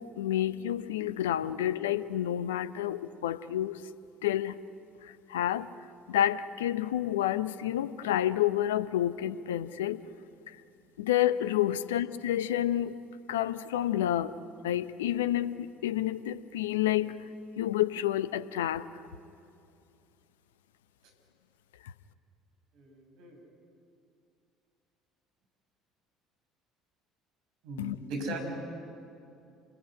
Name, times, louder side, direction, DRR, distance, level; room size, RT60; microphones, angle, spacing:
voice 1, 0.0-3.8 4.2-4.6 5.0-5.7 6.1-10.0 11.0-13.0 13.3-14.3 14.6-17.1 17.6-18.9 21.8-21.9 27.8-28.0, left 12 dB, 75° left, 15 dB, 0.7 m, -29 dB
voice 2, 22.7-23.4 27.6-28.4, right 3 dB, 60° right, 3 dB, 6.4 m, -39 dB
28.5 x 21.0 x 9.9 m, 2.5 s
figure-of-eight pair, 60°, 0 cm